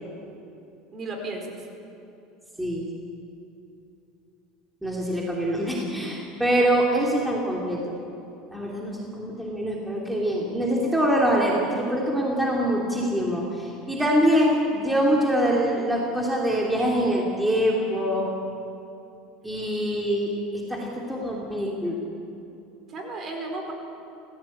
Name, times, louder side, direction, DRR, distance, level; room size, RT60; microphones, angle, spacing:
voice 1, 0.9-1.6 22.9-23.7, right 2 dB, 35° right, 4 dB, 4.6 m, -34 dB
voice 2, 4.8-7.8 8.5-18.3 19.4-20.3 20.7-21.9, equal, 5° right, -3 dB, 3.1 m, -24 dB
30.0 x 16.0 x 8.7 m, 2.9 s
supercardioid pair, 140°, 0 cm